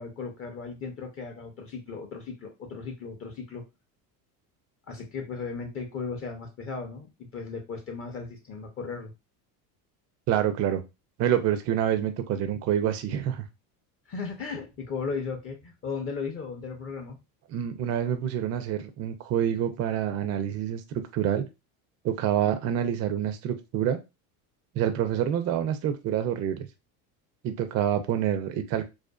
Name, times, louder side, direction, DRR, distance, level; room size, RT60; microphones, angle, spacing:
voice 1, 0.0-3.6 4.9-9.1 14.1-17.2, left 5 dB, 30° left, 0.6 m, -36 dB
voice 2, 10.3-10.8 11.2-13.4 17.5-21.4 22.0-24.0 24.8-26.7 27.4-28.9, right 10 dB, 35° right, 0.4 m, -27 dB
2.5 x 2.2 x 2.2 m
supercardioid pair, 105°, 45 cm